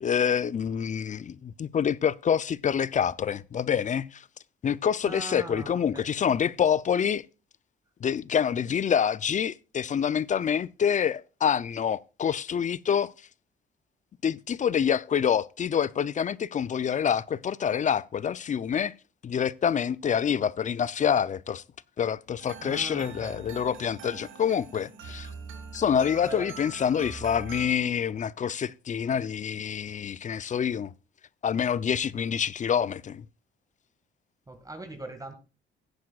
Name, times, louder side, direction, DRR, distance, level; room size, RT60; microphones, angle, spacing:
voice 1, 0.0-4.2 4.6-7.2 8.0-13.1 14.2-18.9 19.2-21.6 22.0-25.3 25.7-30.9 31.4-33.2, left 8 dB, 40° left, 0.5 m, -27 dB
voice 2, 5.0-6.1 22.6-23.4 26.2-26.5 34.5-35.3, right 2 dB, 15° right, 1.9 m, -40 dB
sound 1, 22.4-27.7, right 5 dB, 80° right, 1.9 m, -43 dB
17.0 x 9.4 x 2.4 m
cardioid pair, 90°, 20 cm